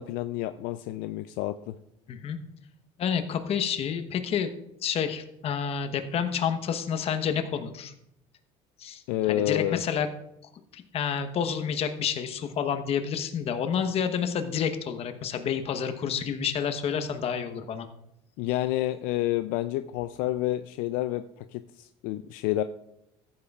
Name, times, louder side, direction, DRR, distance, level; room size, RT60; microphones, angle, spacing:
voice 1, 0.0-1.7 9.1-9.8 18.4-21.2 21.5-22.6, left 14 dB, 75° left, 10 dB, 0.4 m, -29 dB
voice 2, 3.0-4.5 4.8-7.9 8.8-10.1 10.7-17.9, left 7 dB, 45° left, 8 dB, 1.0 m, -29 dB
14.5 x 8.7 x 2.4 m, 0.83 s
supercardioid pair, 110°, 14 cm